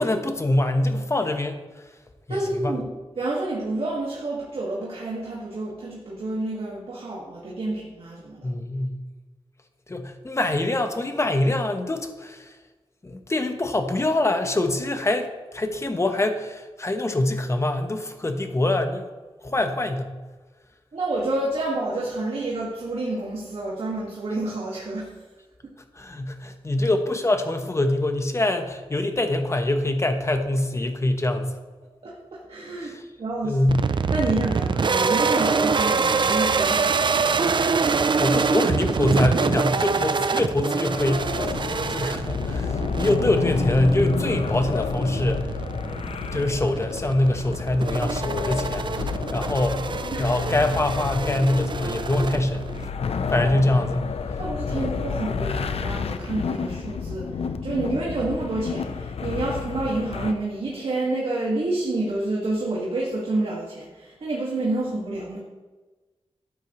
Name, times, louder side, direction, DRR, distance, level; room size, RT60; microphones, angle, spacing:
voice 1, 0.0-1.9 2.3-2.8 8.4-9.0 9.9-12.6 13.0-19.1 19.4-20.1 25.9-31.6 32.8-33.0 33.4-33.9 38.2-45.5 46.3-49.9 50.2-52.6 53.3-54.1 54.7-54.8, left 1 dB, 30° left, 6 dB, 1.1 m, -24 dB
voice 2, 2.3-2.9 3.2-8.5 20.9-25.1 32.0-33.6 34.1-37.4 50.1-50.3 54.4-65.4, right 2 dB, 70° right, -5 dB, 1.9 m, -29 dB
sound 1, 33.7-52.9, right 5 dB, 50° right, 0.5 m, -25 dB
sound 2, 40.9-60.3, left 5 dB, 85° left, 0.6 m, -30 dB
13.0 x 9.0 x 3.1 m, 1.3 s
wide cardioid pair, 85°, 10 cm